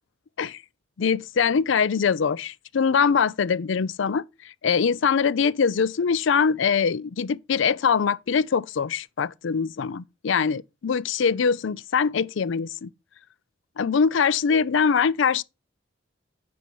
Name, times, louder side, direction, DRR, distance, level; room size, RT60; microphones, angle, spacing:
voice 1, 1.0-4.2 4.6-12.9 13.8-15.4, left 6 dB, 70° left, 0.4 m, -23 dB
9.1 x 4.4 x 5.3 m
head